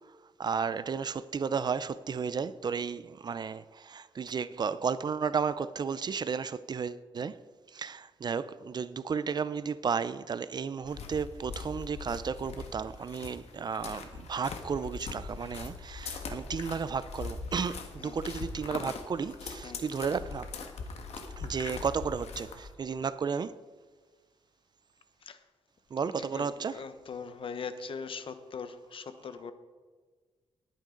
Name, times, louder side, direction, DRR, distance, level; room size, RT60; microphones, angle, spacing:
voice 1, 0.4-7.4 7.7-20.5 21.4-23.6 25.9-26.8, right 6 dB, 45° right, 0.5 m, -33 dB
sound 1, 10.9-22.7, left 4 dB, 85° left, 1.5 m, -41 dB
voice 2, 26.2-29.5, left 5 dB, 60° left, 1.0 m, -41 dB
19.5 x 9.2 x 3.9 m
wide cardioid pair, 125°, 10 cm